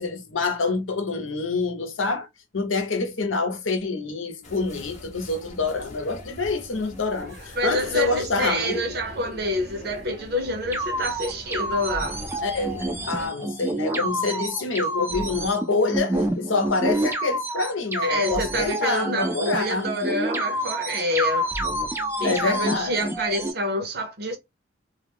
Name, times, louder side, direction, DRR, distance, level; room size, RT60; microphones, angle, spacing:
voice 1, 0.0-2.3 2.5-8.8 12.4-19.9 22.2-23.1, left 3 dB, 90° left, 0.8 m, -26 dB
sound 1, 4.4-13.3, left 1 dB, 40° left, 0.8 m, -42 dB
voice 2, 7.6-12.2 18.0-21.5 22.2-24.4, equal, 55° right, 0.7 m, -27 dB
sound 2, 10.7-23.5, right 1 dB, 10° right, 0.4 m, -28 dB
2.3 x 2.1 x 3.3 m
head